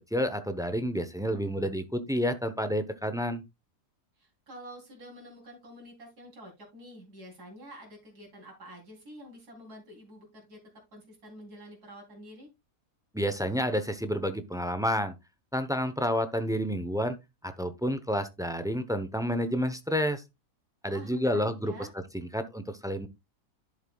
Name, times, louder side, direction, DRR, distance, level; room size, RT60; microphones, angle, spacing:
voice 1, 0.1-3.4 13.1-15.1 15.5-17.2 17.4-20.2 20.8-21.7 22.1-23.1, equal, 5° right, 10 dB, 0.4 m, -29 dB
voice 2, 4.2-10.6 10.9-12.5 20.9-21.9, equal, 85° right, 0 dB, 4.1 m, -48 dB
11.0 x 7.4 x 2.3 m, 0.22 s
omnidirectional pair, 1.6 m